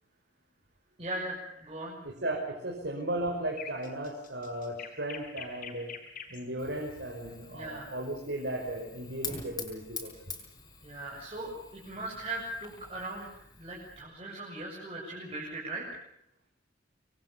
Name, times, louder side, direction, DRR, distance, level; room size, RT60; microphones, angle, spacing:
voice 1, 1.0-2.0 7.5-7.9 10.8-16.0, right 2 dB, 30° right, -4 dB, 6.8 m, -39 dB
voice 2, 2.0-5.9 6.3-10.3, right 1 dB, 65° right, 0 dB, 5.2 m, -36 dB
sound 1, 3.4-6.4 8.5-8.8, left 7 dB, 45° left, 6.1 m, -44 dB
Fire, 6.6-14.0, left 5 dB, 20° left, 6.5 m, -46 dB
26.5 x 23.5 x 7.0 m, 0.75 s
head